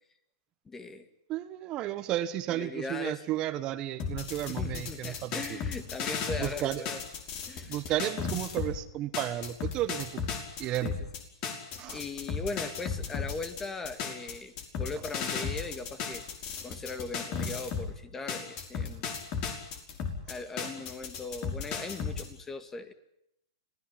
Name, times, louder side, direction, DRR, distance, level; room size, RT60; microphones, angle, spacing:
voice 1, 0.7-1.1 2.5-3.2 4.5-7.0 7.5-7.7 10.5-10.9 11.4-16.2 16.6-19.1 20.3-22.9, left 3 dB, 15° left, 11 dB, 2.3 m, -39 dB
voice 2, 1.3-5.6 6.4-6.8 7.7-10.2 10.6-10.9 11.8-12.0 20.6-20.7, right 13 dB, 35° right, 11 dB, 1.4 m, -33 dB
sound 1, 4.0-8.8 9.1-17.9 18.3-22.2, left 6 dB, 40° left, 5.6 m, -35 dB
26.0 x 17.5 x 10.0 m, 0.78 s
hypercardioid pair, 120°, 2 cm